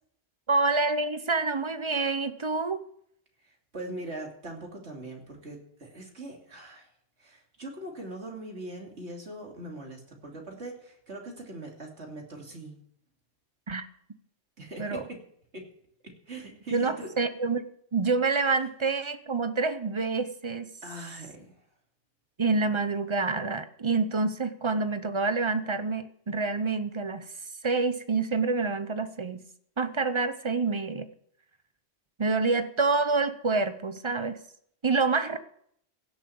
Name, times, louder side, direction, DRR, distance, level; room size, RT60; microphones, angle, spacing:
voice 1, 0.5-2.8 13.7-13.9 14.8-15.0 16.7-17.6 17.9-20.7 22.4-27.3 27.6-29.5 29.8-31.1 32.2-34.4 34.8-35.4, right 4 dB, 30° right, 11 dB, 0.8 m, -27 dB
voice 2, 3.7-6.9 7.2-12.7 14.6-15.2 15.5-15.6 16.0-17.1 20.8-21.5, right 1 dB, 80° right, 1 dB, 3.1 m, -41 dB
16.5 x 7.5 x 7.0 m, 0.69 s
omnidirectional pair, 1.1 m